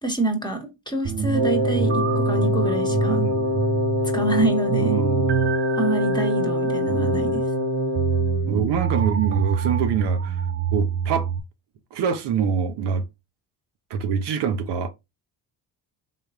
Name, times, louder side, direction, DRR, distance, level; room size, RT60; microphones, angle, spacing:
voice 1, 0.0-3.2 4.1-5.0 5.8-7.4, right 2 dB, 10° left, 1.2 m, -26 dB
sound 1, 1.0-11.4, right 6 dB, 30° right, 0.3 m, -26 dB
Wind instrument woodwind instrument, 1.3-8.6, left 2 dB, 85° right, 1.1 m, -25 dB
voice 2, 3.1-3.5 4.8-5.5 6.9-7.3 8.5-10.4 10.7-11.3 11.9-13.0 13.9-14.9, right 6 dB, 65° right, 0.7 m, -25 dB
3.4 x 3.1 x 2.3 m
supercardioid pair, 65°, 45 cm